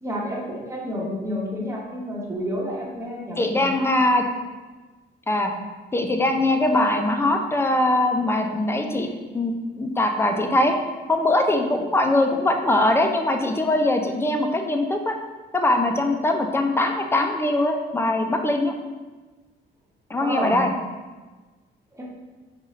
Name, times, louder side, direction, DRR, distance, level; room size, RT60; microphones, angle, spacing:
voice 1, 0.0-4.0 20.2-20.6 22.0-22.1, equal, 15° right, -4 dB, 1.1 m, -30 dB
voice 2, 3.4-4.2 5.3-5.5 5.9-9.1 9.3-10.7 11.1-15.2 15.5-18.7 20.1-20.7, left 1 dB, 10° left, 4 dB, 0.4 m, -21 dB
5.4 x 2.4 x 3.1 m, 1.3 s
cardioid pair, 90°, 20 cm